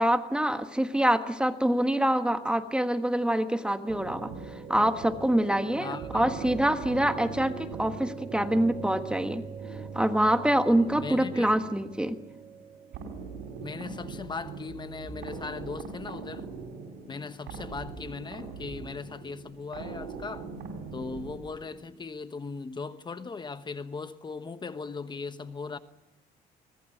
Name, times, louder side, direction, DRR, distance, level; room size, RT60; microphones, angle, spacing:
voice 1, 0.0-9.4 9.9-12.2, right 1 dB, 5° right, 1.3 m, -25 dB
sound 1, 3.4-15.5, right 6 dB, 45° right, 2.1 m, -43 dB
sound 2, 3.9-22.0, right 4 dB, 80° right, 5.9 m, -42 dB
voice 2, 5.8-6.5 10.9-11.5 13.6-16.5 17.1-20.5 20.9-25.8, left 4 dB, 25° left, 1.2 m, -38 dB
23.5 x 19.0 x 9.2 m
cardioid pair, 110°, 17 cm